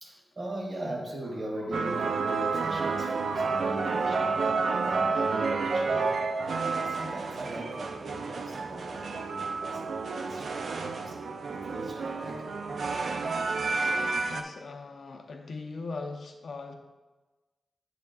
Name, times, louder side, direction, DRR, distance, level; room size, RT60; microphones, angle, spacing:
voice 1, 0.0-11.2 11.5-12.5, right 1 dB, 40° right, -2 dB, 1.8 m, -39 dB
sound 1, 1.7-14.4, right 4 dB, 65° right, 0.5 m, -30 dB
voice 2, 14.3-16.7, left 3 dB, 65° left, 3 dB, 0.6 m, -39 dB
9.1 x 7.4 x 2.3 m, 1.2 s
wide cardioid pair, 175°, 0 cm